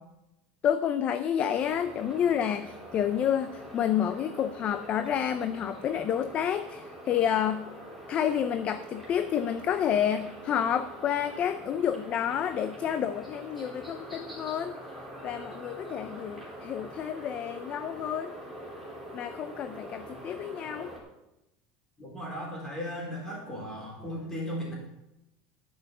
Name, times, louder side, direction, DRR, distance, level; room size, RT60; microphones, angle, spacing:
voice 1, 0.6-7.7 8.1-14.7 15.2-18.3 19.1-20.9, left 9 dB, 30° left, 11 dB, 0.5 m, -29 dB
sound 1, 1.5-21.0, equal, ahead, 3.2 m, -44 dB
voice 2, 22.0-24.7, equal, 15° left, -3 dB, 4.1 m, -36 dB
10.5 x 6.3 x 7.9 m, 0.93 s
supercardioid pair, 155°, 4 cm